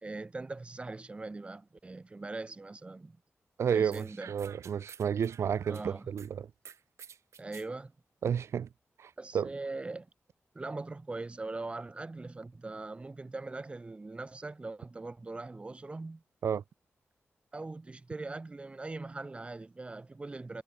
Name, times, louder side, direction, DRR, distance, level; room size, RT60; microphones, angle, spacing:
voice 1, 0.0-3.2 3.7-4.3 5.6-6.1 7.4-8.0 9.2-10.1 10.5-16.2 17.5-20.6, right 3 dB, 25° right, 4.2 m, -41 dB
voice 2, 3.6-6.5 8.2-8.7 9.0-9.5 16.4-16.6, right 8 dB, 70° right, 0.4 m, -31 dB
sound 1, 3.9-6.3 6.6-7.7, right 7 dB, 85° right, 2.1 m, -51 dB
wide cardioid pair, 160°, 5 cm